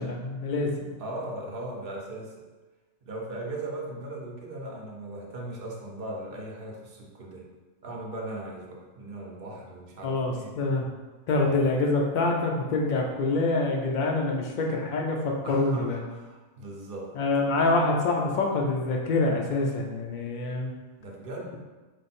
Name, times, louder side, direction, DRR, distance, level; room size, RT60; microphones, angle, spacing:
voice 1, 0.0-0.9 10.0-10.9 11.3-16.0 17.2-20.7, left 2 dB, 65° left, 0 dB, 0.4 m, -26 dB
voice 2, 1.0-2.4 3.0-7.5 7.8-10.6 11.4-11.6 15.4-17.2 21.0-21.6, right 1 dB, 50° right, -2 dB, 0.8 m, -38 dB
4.9 x 2.0 x 4.2 m, 1.2 s
omnidirectional pair, 1.5 m